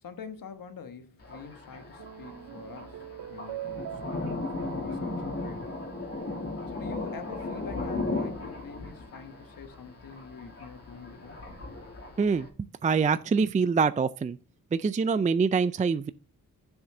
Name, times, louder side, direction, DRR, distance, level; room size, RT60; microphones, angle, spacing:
voice 1, 0.0-3.0 3.3-4.2 4.6-5.8 6.7-11.4, left 6 dB, 70° left, 1.3 m, -45 dB
Thunder, 1.2-12.5, left 2 dB, 40° left, 2.6 m, -36 dB
sound 1, 1.7-6.3, right 12 dB, 85° right, 0.7 m, -43 dB
voice 2, 12.2-12.5 12.8-14.4 14.7-16.1, right 5 dB, 20° right, 0.4 m, -25 dB
7.4 x 7.1 x 3.7 m
cardioid pair, 80°, 35 cm